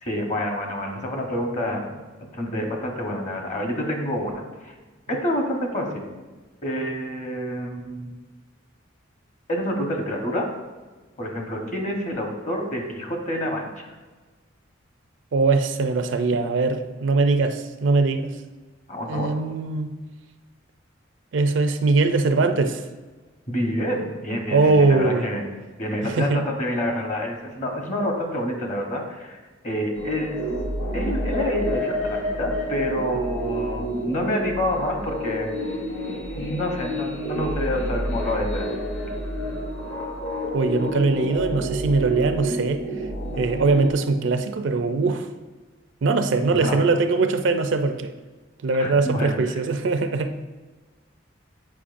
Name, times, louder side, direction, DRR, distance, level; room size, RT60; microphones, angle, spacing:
voice 1, 0.0-1.9 2.3-4.7 5.1-6.0 6.6-8.2 9.5-10.5 11.2-13.9 18.9-19.3 23.5-25.4 25.8-29.4 29.6-30.4 30.9-35.5 36.3-38.7 46.5-46.8 48.8-49.6, left 1 dB, 35° left, 2 dB, 1.0 m, -28 dB
voice 2, 15.3-18.3 19.1-19.9 21.3-22.8 24.5-25.3 26.1-26.4 40.5-42.8 43.4-45.3 46.0-48.1 48.6-50.4, right 3 dB, 65° right, 8 dB, 0.4 m, -21 dB
sound 1, 29.9-43.9, equal, 75° left, 1.5 m, -29 dB
8.4 x 5.2 x 2.5 m, 1.3 s
head